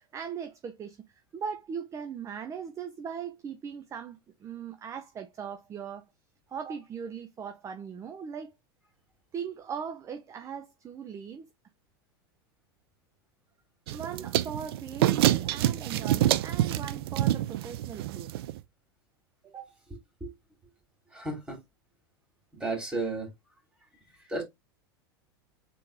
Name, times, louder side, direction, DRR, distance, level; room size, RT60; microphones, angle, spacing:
voice 1, 0.0-6.0 6.5-8.5 9.3-11.5 13.9-18.3 19.4-19.7, right 7 dB, 25° right, 0.6 m, -39 dB
sound 1, 13.9-18.6, right 13 dB, 70° right, 0.5 m, -27 dB
voice 2, 21.1-21.6 22.5-23.3 24.2-24.4, right 2 dB, 10° right, 3.1 m, -33 dB
4.1 x 3.9 x 3.3 m
hypercardioid pair, 115°, 13 cm